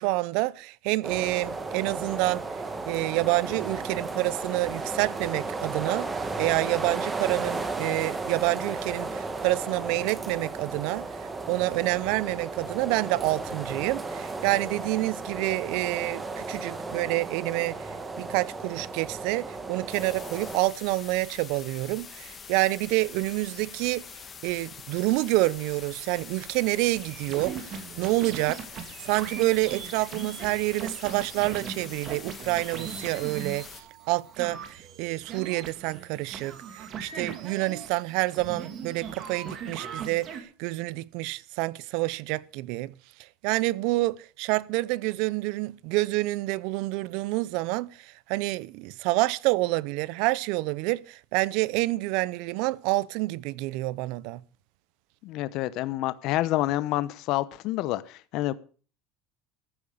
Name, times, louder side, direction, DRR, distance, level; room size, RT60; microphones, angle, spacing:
voice 1, 0.0-2.4 2.9-11.1 11.5-24.0 24.4-28.6 29.0-42.9 43.4-54.4, right 20 dB, 65° right, 0.6 m, -28 dB
sound 1, 1.0-20.6, right 3 dB, 15° right, 1.5 m, -34 dB
sound 2, 19.9-33.8, left 6 dB, 20° left, 1.4 m, -45 dB
sound 3, 27.0-40.4, right 7 dB, 35° right, 2.4 m, -40 dB
voice 2, 55.2-58.5, left 15 dB, 50° left, 0.9 m, -28 dB
14.0 x 8.7 x 6.7 m
cardioid pair, 150°, 0 cm